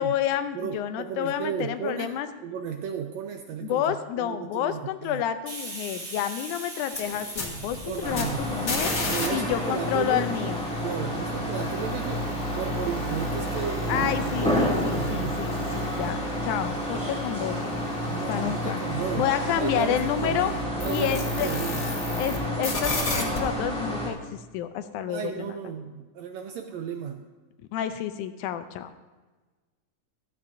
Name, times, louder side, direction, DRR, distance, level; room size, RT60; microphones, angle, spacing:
voice 1, 0.0-2.3 3.6-9.0 9.3-10.6 13.9-17.6 18.3-18.8 19.2-20.5 20.9-21.5 22.2-25.5 27.7-28.9, left 10 dB, 80° left, 10 dB, 2.0 m, -29 dB
voice 2, 0.5-2.1 2.4-5.2 7.5-8.5 9.0-10.5 10.8-14.1 14.4-15.4 18.1-19.3 19.5-21.9 25.1-27.3, right 7 dB, 80° right, 6 dB, 1.6 m, -34 dB
Hiss, 5.5-12.9, right 2 dB, 45° right, 3.1 m, -43 dB
sound 1, 6.8-9.3 9.5-22.4 22.6-23.4, left 1 dB, 30° left, 1.8 m, -34 dB
sound 2, 8.0-24.1, equal, ahead, 1.7 m, -30 dB
14.0 x 13.0 x 2.6 m, 1.3 s
omnidirectional pair, 3.6 m